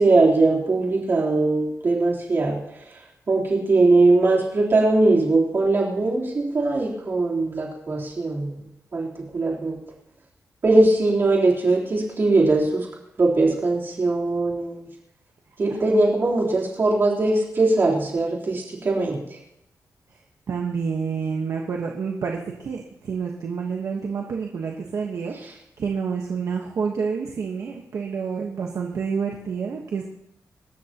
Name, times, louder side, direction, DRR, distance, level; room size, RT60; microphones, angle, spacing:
voice 1, 0.0-2.6 3.3-8.6 8.9-9.8 10.6-12.9 13.2-14.8 15.6-19.2, right 2 dB, 40° right, -3 dB, 3.7 m, -20 dB
voice 2, 20.5-30.0, right 5 dB, 60° right, 0 dB, 1.3 m, -28 dB
26.0 x 13.5 x 3.0 m, 0.83 s
wide cardioid pair, 170°, 6 cm